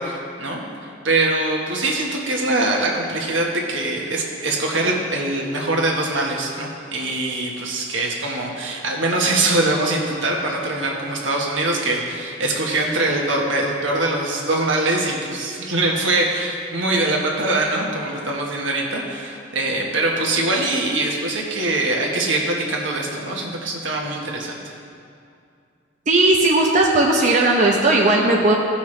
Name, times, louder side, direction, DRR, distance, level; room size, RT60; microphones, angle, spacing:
voice 1, 0.0-24.7, right 2 dB, 75° right, -1 dB, 1.3 m, -23 dB
voice 2, 26.1-28.6, right 2 dB, 40° right, -2 dB, 0.7 m, -16 dB
15.0 x 5.6 x 3.3 m, 2.4 s
head